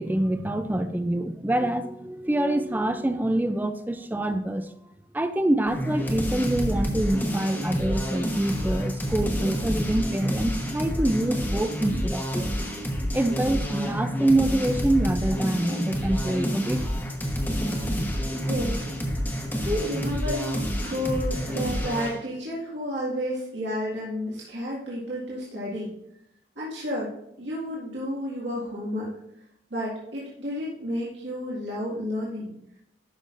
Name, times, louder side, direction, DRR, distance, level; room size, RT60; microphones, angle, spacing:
voice 1, 0.0-4.7 5.1-12.5 13.1-16.8, right 1 dB, 10° right, 9 dB, 0.4 m, -26 dB
sound 1, 5.7-22.2, equal, 10° left, 1.0 m, -28 dB
voice 2, 17.8-18.1 18.4-19.2 19.5-25.9 26.6-27.1 27.4-29.1 29.7-32.5, equal, 75° right, -7 dB, 2.0 m, -31 dB
11.5 x 5.5 x 2.6 m, 0.78 s
head